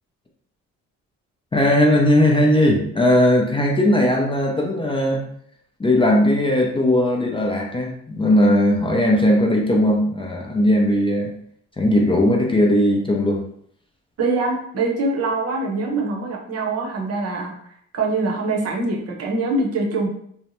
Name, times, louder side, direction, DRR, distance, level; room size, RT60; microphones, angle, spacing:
voice 1, 1.5-5.2 5.8-11.3 11.8-13.4, left 1 dB, 15° left, -1 dB, 0.4 m, -18 dB
voice 2, 14.2-17.6 17.9-20.1, right 3 dB, 55° right, 0 dB, 0.8 m, -23 dB
2.7 x 2.1 x 3.0 m, 0.66 s
cardioid pair, 90°, 30 cm